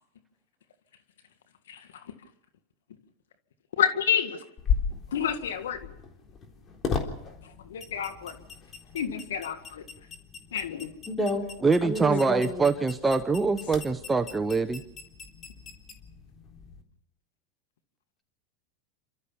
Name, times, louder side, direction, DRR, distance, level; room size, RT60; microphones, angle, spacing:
voice 1, 3.8-4.4 5.1-5.8 7.7-8.4 8.9-9.8 10.5-10.9, left 9 dB, 85° left, 9 dB, 1.8 m, -28 dB
sound 1, 4.6-16.8, left 6 dB, 30° left, 3.7 m, -37 dB
voice 2, 11.1-11.5 11.8-12.7, left 1 dB, 10° left, 1 dB, 4.9 m, -30 dB
voice 3, 11.6-14.8, right 4 dB, 15° right, 8 dB, 0.9 m, -24 dB
28.5 x 13.5 x 7.1 m, 0.82 s
hypercardioid pair, 110°, 0 cm